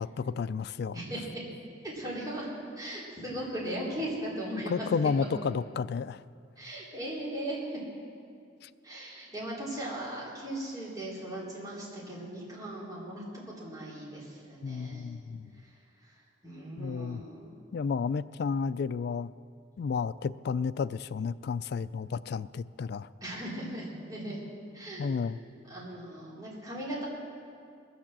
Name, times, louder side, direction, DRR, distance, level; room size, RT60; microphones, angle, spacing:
voice 1, 0.0-1.0 4.5-6.2 8.6-8.7 14.6-15.5 16.8-17.2 17.7-19.3 19.8-23.1 25.0-25.4, left 5 dB, 55° left, 17 dB, 0.3 m, -32 dB
voice 2, 0.9-1.4 1.8-2.5 2.8-4.9 5.2-5.3 6.6-7.8 8.8-13.2 13.6-15.1 16.4-17.5 23.2-24.5 24.7-25.1 25.7-27.1, right 1 dB, 20° right, -6 dB, 3.8 m, -38 dB
20.5 x 7.2 x 7.4 m, 2.3 s
head